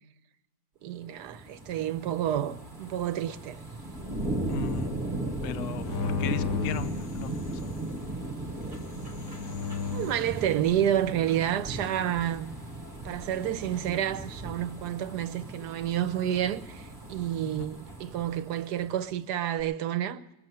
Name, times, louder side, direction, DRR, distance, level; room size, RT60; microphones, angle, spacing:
voice 1, 0.8-3.6 9.9-12.6 13.0-20.3, right 11 dB, 75° right, 1.3 m, -29 dB
sound 1, 1.0-19.2 19.6-19.7, right 2 dB, 35° right, 1.3 m, -37 dB
voice 2, 4.5-5.0 5.4-7.7 17.6-17.7, left 9 dB, 60° left, 1.0 m, -37 dB
sound 2, 5.8-7.8 8.8-10.3, left 6 dB, 80° left, 1.5 m, -34 dB
21.5 x 7.6 x 7.9 m
omnidirectional pair, 1.8 m